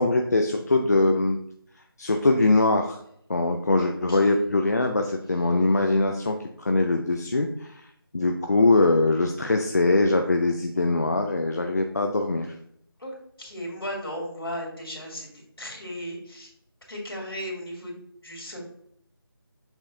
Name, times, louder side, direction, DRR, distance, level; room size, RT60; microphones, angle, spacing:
voice 1, 0.0-1.4 2.0-3.0 3.3-7.9 8.1-12.5, left 2 dB, 45° left, 4 dB, 0.5 m, -22 dB
voice 2, 3.8-4.3 13.0-15.3 15.6-16.5 16.9-18.0 18.2-18.7, equal, 70° left, -1 dB, 2.8 m, -36 dB
7.1 x 5.5 x 2.7 m, 0.69 s
figure-of-eight pair, 165°, 13 cm